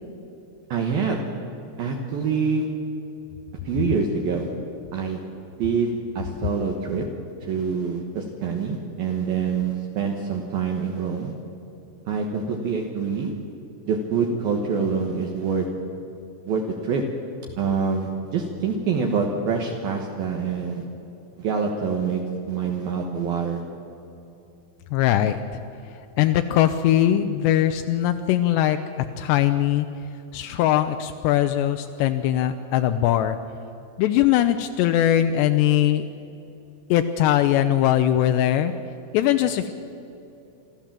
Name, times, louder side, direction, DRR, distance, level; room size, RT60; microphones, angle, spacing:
voice 1, 0.7-1.2 1.8-2.7 3.6-4.5 4.9-5.2 5.6-7.0 7.5-11.3 12.1-13.3 13.8-15.7 16.5-17.0 17.6-20.8 21.4-22.2 22.5-23.6, right 5 dB, 70° right, 2 dB, 2.5 m, -25 dB
voice 2, 24.9-25.6 26.2-28.8 29.2-29.9 30.3-33.4 34.0-36.1 36.9-38.7 39.1-39.7, left 12 dB, 90° left, 8 dB, 2.4 m, -21 dB
27.0 x 13.0 x 7.5 m, 2.9 s
omnidirectional pair, 5.7 m